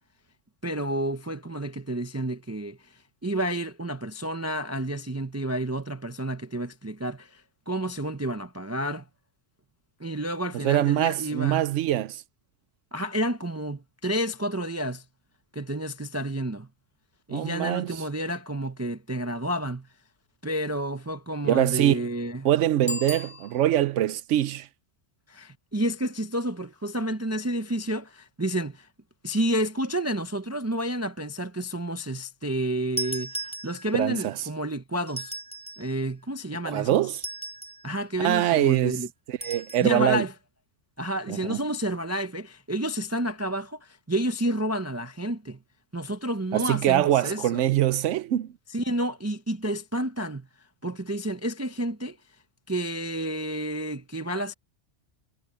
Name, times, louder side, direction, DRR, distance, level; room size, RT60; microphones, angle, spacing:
voice 1, 0.6-9.1 10.0-11.6 12.9-15.0 15.5-16.7 17.3-19.9 20.4-22.5 25.3-28.9 29.2-35.3 35.8-37.0 37.8-39.1 39.8-40.3 41.0-45.6 45.9-47.6 48.7-50.5 50.8-52.2 52.7-54.5, right 1 dB, 15° right, 0.6 m, -30 dB
voice 2, 10.5-12.2 17.3-18.0 21.4-22.1 22.4-24.7 33.9-34.4 36.6-37.2 38.2-39.0 39.3-40.3 41.3-41.6 46.5-48.5, right 12 dB, 85° right, 0.9 m, -24 dB
Bicycle bell, 22.8-24.0, left 3 dB, 30° left, 1.7 m, -36 dB
sound 1, 33.0-34.1 35.1-35.9 37.1-37.9 39.4-39.9, right 2 dB, 5° left, 2.3 m, -36 dB
omnidirectional pair, 1.2 m